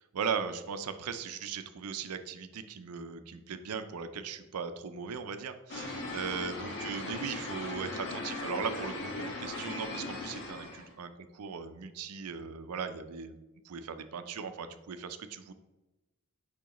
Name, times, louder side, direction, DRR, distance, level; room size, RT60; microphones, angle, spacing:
voice 1, 0.1-13.3 13.6-15.5, right 6 dB, 80° right, 9 dB, 0.5 m, -38 dB
sound 1, 5.7-10.9, left 2 dB, 55° left, 1.2 m, -38 dB
6.9 x 5.0 x 3.0 m, 1.0 s
head